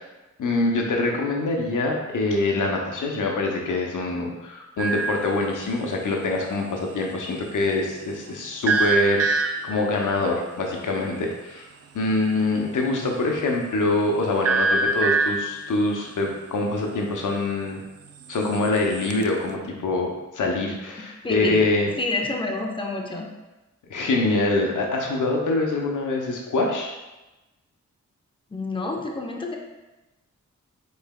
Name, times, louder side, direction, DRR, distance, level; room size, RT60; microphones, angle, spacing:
voice 1, 0.4-11.7 11.9-17.8 18.3-21.9 23.9-27.0, left 2 dB, 85° left, 1 dB, 0.7 m, -24 dB
sound 1, 4.8-5.3 8.7-9.9 14.4-15.6 18.3-19.3, right 3 dB, 55° right, 0.4 m, -24 dB
voice 2, 21.2-21.7 22.0-23.3 28.5-29.5, left 2 dB, 15° left, 1 dB, 0.7 m, -28 dB
5.4 x 4.0 x 2.2 m, 1.1 s
cardioid pair, 55°, 30 cm